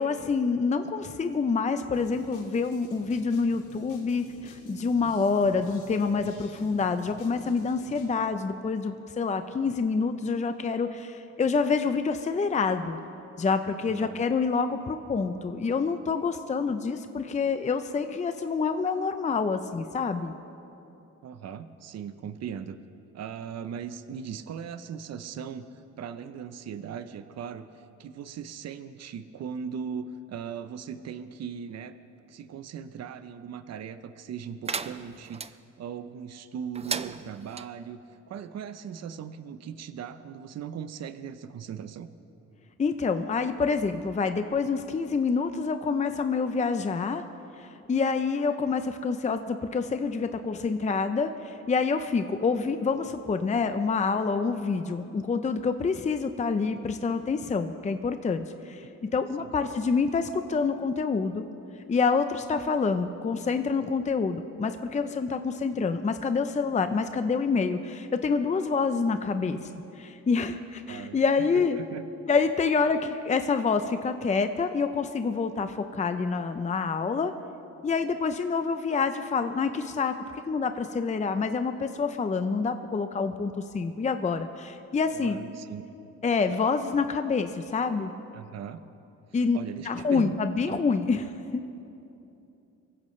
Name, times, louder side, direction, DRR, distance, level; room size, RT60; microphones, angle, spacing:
voice 1, 0.0-13.0 13.4-20.3 42.8-47.2 47.6-61.5 61.9-69.7 70.0-71.8 72.3-77.3 77.8-80.1 80.5-85.4 86.2-88.1 89.3-89.6 89.8-91.6, left 4 dB, 25° left, 8 dB, 0.6 m, -27 dB
sound 1, 1.9-8.1, left 3 dB, 90° left, 2.5 m, -51 dB
voice 2, 13.9-14.2 21.2-22.8 23.1-25.7 26.0-27.7 28.0-32.0 32.3-38.0 38.3-42.1 59.4-59.7 70.9-71.2 71.5-72.0 85.1-85.8 88.3-88.8 89.5-90.4 90.7-90.8, right 7 dB, 60° right, 11 dB, 0.8 m, -38 dB
sound 2, 34.6-35.5 36.7-37.7, right 5 dB, 20° right, 0.5 m, -35 dB
23.5 x 15.5 x 3.2 m, 2.9 s
cardioid pair, 90°, 30 cm